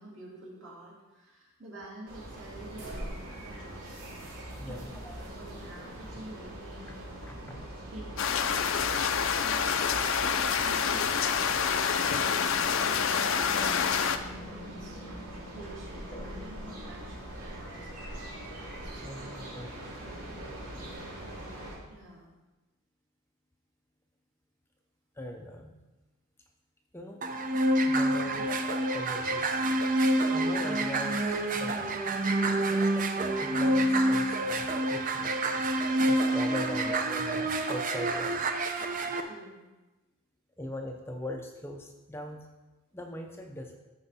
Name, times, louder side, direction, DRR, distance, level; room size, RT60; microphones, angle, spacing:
voice 1, 0.0-4.0 4.6-7.2 7.8-12.2 12.8-15.0 15.5-18.3 20.9-21.5 21.9-22.3 39.2-39.7, right 1 dB, 60° right, -4 dB, 2.7 m, -49 dB
sound 1, 2.1-21.8, right 1 dB, 90° right, 2.6 m, -42 dB
voice 2, 4.6-5.2 7.3-7.4 16.1-16.3 19.0-19.7 25.2-25.8 26.9-27.2 27.9-29.6 30.3-32.1 32.7-35.3 36.0-38.4 40.6-42.5 42.9-43.8, left 1 dB, 10° left, 3 dB, 0.5 m, -40 dB
sound 2, 8.2-14.2, left 7 dB, 60° left, 0.5 m, -27 dB
sound 3, 27.2-39.2, right 1 dB, 35° right, 0.6 m, -27 dB
14.0 x 4.7 x 4.1 m, 1.1 s
head